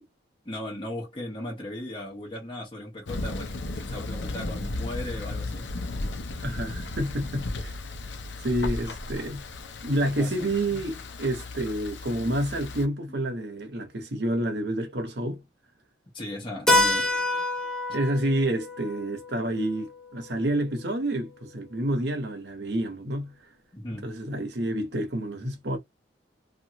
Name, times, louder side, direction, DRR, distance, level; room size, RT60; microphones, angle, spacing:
voice 1, 0.4-5.7 10.2-10.8 16.1-17.1 23.7-24.1, left 1 dB, 25° left, 1.2 m, -37 dB
Thunder, 3.1-12.9, left 2 dB, 80° left, 0.6 m, -35 dB
voice 2, 6.4-7.7 8.4-9.5 9.8-15.4 17.9-23.4 24.0-25.8, right 1 dB, 65° right, 0.8 m, -29 dB
Keyboard (musical), 16.7-21.1, left 2 dB, 5° left, 0.5 m, -28 dB
2.7 x 2.4 x 2.8 m
head